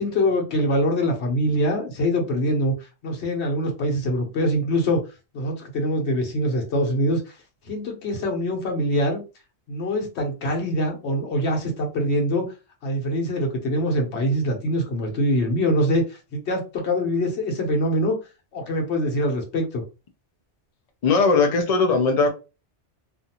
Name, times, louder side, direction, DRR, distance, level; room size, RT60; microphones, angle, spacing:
voice 1, 0.0-2.7 3.0-5.0 5.3-7.2 7.7-9.2 9.7-12.5 12.8-18.1 18.5-19.8, equal, 75° left, 1.1 m, -24 dB
voice 2, 21.0-22.3, left 4 dB, 60° left, 0.4 m, -19 dB
2.5 x 2.4 x 2.7 m
omnidirectional pair, 1.2 m